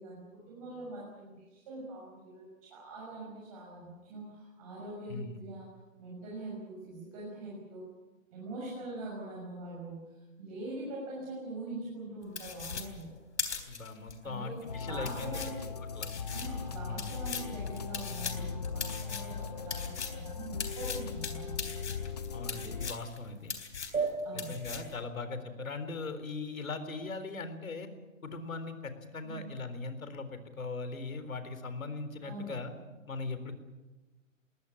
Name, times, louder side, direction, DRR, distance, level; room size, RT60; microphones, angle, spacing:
voice 1, 0.0-5.7 6.0-7.8 8.3-13.1 14.2-14.6 14.8-15.7 16.3-21.6 24.2-24.6 29.2-29.4 32.2-32.5, right 2 dB, 25° right, -4 dB, 5.9 m, -43 dB
sound 1, 12.4-14.1 14.6-14.7 15.0-20.2 20.6-23.2 23.5-24.1 24.4-24.9, left 6 dB, 55° left, 3.7 m, -39 dB
voice 2, 13.7-15.4 15.9-16.1 16.9-17.1 22.3-23.5 24.3-27.9 28.2-32.7 33.1-33.5, left 3 dB, 85° left, 10 dB, 4.0 m, -39 dB
sound 2, 14.7-22.9, left 5 dB, 30° left, 0.7 m, -39 dB
sound 3, 23.9-26.9, right 4 dB, 85° right, 6.9 m, -38 dB
20.5 x 18.5 x 9.8 m, 1.2 s
hypercardioid pair, 175°, 40 cm